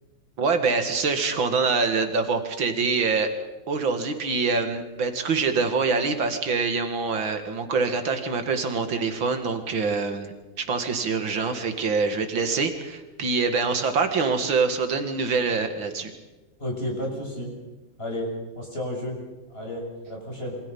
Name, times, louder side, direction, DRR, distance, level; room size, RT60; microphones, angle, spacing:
voice 1, 0.4-3.3 3.7-16.1, right 4 dB, 75° right, 7 dB, 2.9 m, -25 dB
voice 2, 16.6-17.5 18.0-18.3 18.6-19.2 19.5-20.6, left 1 dB, 30° left, -1 dB, 7.0 m, -32 dB
28.0 x 25.0 x 5.6 m, 1.1 s
omnidirectional pair, 2.2 m